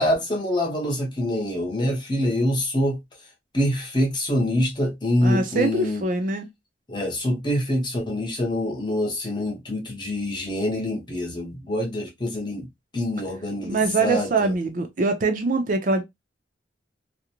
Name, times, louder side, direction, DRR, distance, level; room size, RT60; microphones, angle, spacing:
voice 1, 0.0-3.0 3.5-6.0 6.9-12.7 12.9-14.5, left 1 dB, 25° left, 0.8 m, -25 dB
voice 2, 5.2-6.5 13.6-16.0, right 3 dB, 45° right, 0.5 m, -23 dB
2.4 x 2.1 x 2.8 m
head